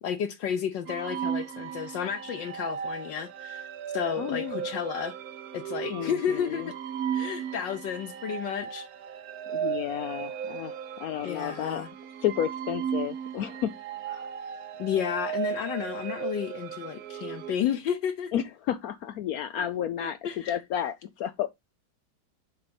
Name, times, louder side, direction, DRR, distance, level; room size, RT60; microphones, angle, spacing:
voice 1, 0.0-3.7 3.9-5.1 5.5-6.7 7.1-8.9 11.2-11.9 14.8-18.3 19.6-19.7 20.0-20.6, left 8 dB, 70° left, 1.4 m, -32 dB
sound 1, 0.9-17.6, right 8 dB, 65° right, 0.9 m, -36 dB
voice 2, 4.2-4.6 5.9-6.7 9.5-10.7 11.0-11.8 12.2-13.7 14.1-14.3 18.3-20.2 20.5-21.5, left 10 dB, 85° left, 0.8 m, -31 dB
7.0 x 4.0 x 5.1 m
omnidirectional pair, 2.2 m